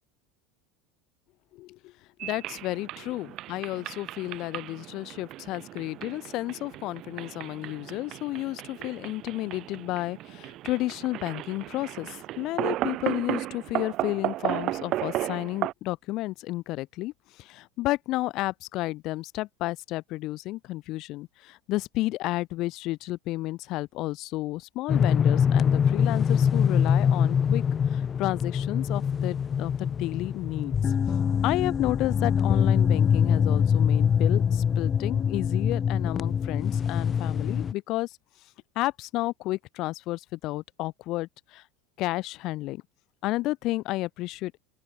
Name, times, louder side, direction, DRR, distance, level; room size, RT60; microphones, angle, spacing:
voice 1, 1.5-1.9 2.2-17.1 17.4-27.6 27.9-30.7 31.4-38.1 38.8-41.6 42.0-42.8 43.2-44.6, left 18 dB, 50° left, 2.1 m, -32 dB
sound 1, 2.2-15.7, right 15 dB, 45° right, 0.7 m, -35 dB
sound 2, 24.9-37.7, left 7 dB, 25° left, 1.0 m, -24 dB
open air
supercardioid pair, 130°, 0 cm